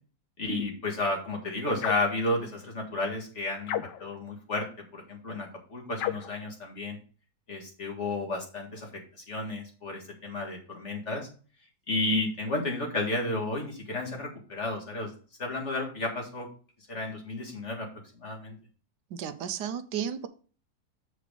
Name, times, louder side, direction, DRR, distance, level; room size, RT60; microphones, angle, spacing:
voice 1, 0.4-4.7 4.9-7.0 7.5-8.9 9.3-11.3 11.9-15.1 15.4-16.5 16.9-17.9 18.2-18.6, left 2 dB, 45° left, -1 dB, 2.1 m, -32 dB
sound 1, 1.8-2.2 3.6-4.2 6.0-6.4, left 11 dB, 85° left, 1.3 m, -33 dB
voice 2, 19.1-20.3, right 8 dB, 80° right, 10 dB, 1.3 m, -33 dB
7.4 x 4.9 x 5.0 m, 0.40 s
omnidirectional pair, 1.8 m